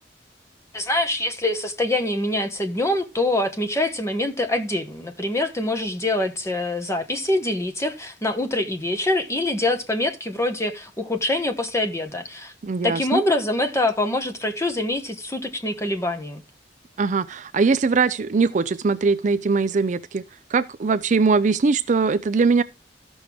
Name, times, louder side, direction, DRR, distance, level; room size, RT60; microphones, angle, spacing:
voice 1, 0.7-12.5 12.8-16.4, left 1 dB, 15° left, 1.2 m, -25 dB
voice 2, 12.6-13.2 17.0-20.2 20.5-22.6, right 4 dB, 40° right, 0.4 m, -21 dB
13.5 x 6.2 x 3.4 m
head